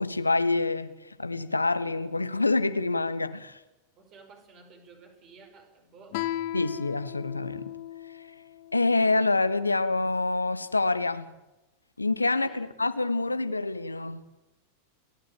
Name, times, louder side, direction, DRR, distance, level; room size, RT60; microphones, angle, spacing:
voice 1, 0.0-3.6 6.5-7.7 8.7-11.3 12.0-14.2, left 3 dB, 80° left, 1.2 m, -26 dB
voice 2, 4.0-6.4 12.3-12.6, right 4 dB, 35° right, 5.6 m, -53 dB
Guitar, 6.1-9.4, left 14 dB, 50° left, 2.0 m, -37 dB
29.5 x 12.5 x 9.2 m
figure-of-eight pair, 90°, 0 cm